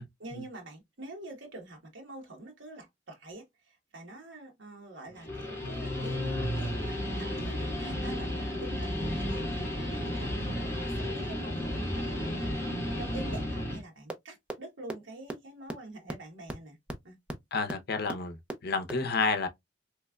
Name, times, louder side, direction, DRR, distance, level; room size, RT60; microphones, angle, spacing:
voice 1, 0.2-16.8 17.0-17.2, right 2 dB, 75° right, 1.3 m, -46 dB
Guitar, 5.1-13.8, left 1 dB, 15° left, 1.6 m, -33 dB
sound 1, 14.1-14.2 14.5-14.6 14.9-15.0 15.3-15.4 15.7-15.8 16.1-16.2 16.5-16.6 16.9-17.0 17.3-17.4 17.7-17.8 18.1-18.2 18.5-18.6 18.9-19.0, right 1 dB, 5° right, 0.5 m, -35 dB
voice 2, 17.5-19.5, left 4 dB, 55° left, 0.7 m, -30 dB
3.4 x 3.0 x 2.3 m
head